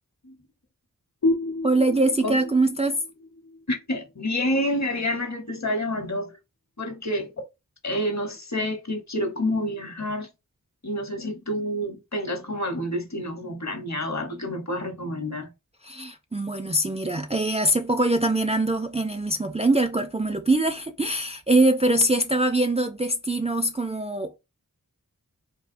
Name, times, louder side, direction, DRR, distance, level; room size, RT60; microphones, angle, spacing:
sound 1, 1.2-4.6, left 2 dB, 80° left, 0.9 m, -30 dB
voice 1, 1.6-3.0 15.8-24.4, right 2 dB, 20° right, 0.4 m, -23 dB
voice 2, 3.7-6.4 6.8-7.4 7.8-10.3 10.8-15.5, left 1 dB, 50° left, 0.9 m, -28 dB
3.5 x 2.3 x 2.5 m
wide cardioid pair, 45°, 36 cm